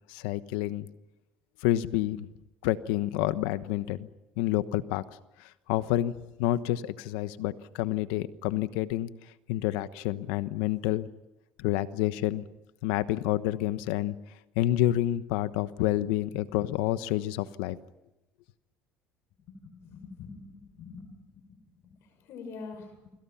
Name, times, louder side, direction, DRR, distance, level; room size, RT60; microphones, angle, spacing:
voice 1, 0.1-0.9 1.6-2.3 2.6-4.1 4.4-5.0 5.4-6.1 6.4-9.1 9.5-11.1 11.6-12.4 12.8-14.1 14.6-17.8, left 14 dB, 90° left, 13 dB, 1.1 m, -28 dB
voice 2, 19.4-23.1, left 4 dB, 65° left, 6 dB, 6.2 m, -46 dB
30.0 x 25.0 x 5.7 m, 0.94 s
supercardioid pair, 105°, 5 cm